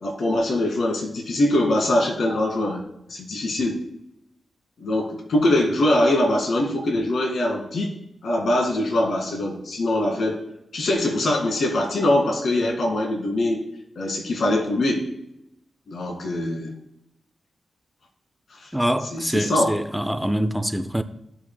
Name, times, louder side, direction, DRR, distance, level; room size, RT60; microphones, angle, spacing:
voice 1, 0.0-2.8 3.1-3.8 4.8-7.9 8.2-10.4 10.7-13.6 14.0-15.1 15.9-16.7 18.6-18.7 19.1-19.7, left 1 dB, 70° left, 2.1 m, -22 dB
voice 2, 18.7-21.0, equal, ahead, 0.6 m, -24 dB
14.5 x 5.9 x 2.2 m
cardioid pair, 60°, 0 cm